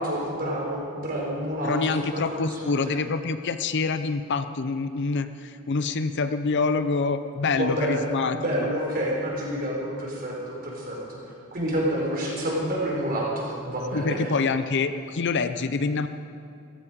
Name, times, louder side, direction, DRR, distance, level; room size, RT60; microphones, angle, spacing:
voice 1, 0.0-3.0 7.5-8.0 8.3-11.2 11.5-14.2, equal, 45° right, -3 dB, 4.5 m, -28 dB
voice 2, 1.6-8.4 13.9-16.1, left 4 dB, 55° left, 10 dB, 0.6 m, -26 dB
15.5 x 14.5 x 5.2 m, 2.5 s
head